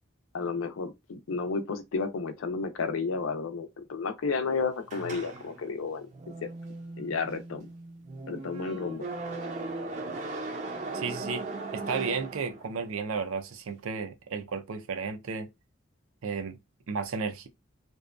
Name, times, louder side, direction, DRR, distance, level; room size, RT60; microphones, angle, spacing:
voice 1, 0.3-6.1 6.4-6.5 7.0-7.7 8.3-9.0, left 4 dB, 80° left, 0.5 m, -32 dB
sound 1, 4.9-12.9, right 3 dB, 35° right, 0.5 m, -38 dB
voice 2, 10.9-11.5 11.7-15.5 16.2-16.6 16.9-17.5, right 5 dB, 85° right, 0.5 m, -33 dB
2.6 x 2.2 x 2.4 m
head